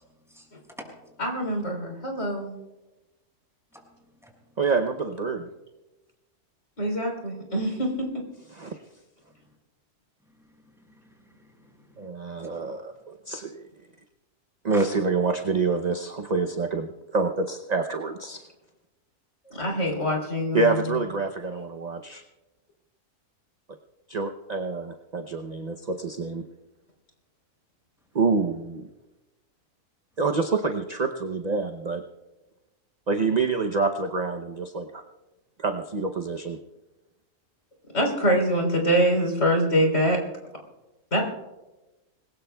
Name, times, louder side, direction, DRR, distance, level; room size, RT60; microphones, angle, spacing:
voice 1, 0.0-1.1 3.7-3.8 4.2-4.3 9.4-9.6 10.4-12.1 12.4-12.7 14.7-14.8, equal, ahead, -1 dB, 5.7 m, -48 dB
voice 2, 1.2-2.6 6.8-8.2 19.5-21.0 37.9-40.2 41.1-41.2, equal, 55° left, 1 dB, 3.9 m, -24 dB
voice 3, 4.6-5.5 8.5-8.8 12.0-13.6 14.6-18.4 20.5-22.2 24.1-26.4 28.1-28.9 30.2-32.0 33.1-35.0 35.6-36.6, right 4 dB, 40° right, 5 dB, 0.6 m, -27 dB
26.5 x 20.5 x 2.3 m, 1.1 s
omnidirectional pair, 1.6 m